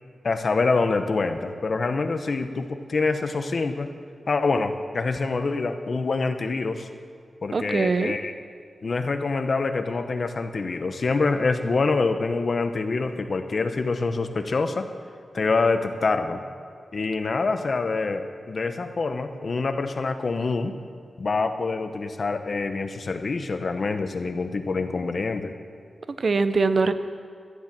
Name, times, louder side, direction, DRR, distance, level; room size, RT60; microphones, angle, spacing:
voice 1, 0.2-3.9 4.3-6.9 7.4-8.3 8.8-14.9 15.3-16.4 16.9-20.8 21.2-25.5, left 3 dB, 55° left, 8 dB, 0.9 m, -26 dB
voice 2, 7.5-8.2 26.2-26.9, right 4 dB, 55° right, 11 dB, 0.6 m, -22 dB
13.0 x 10.5 x 7.4 m, 2.1 s
wide cardioid pair, 120°, 0 cm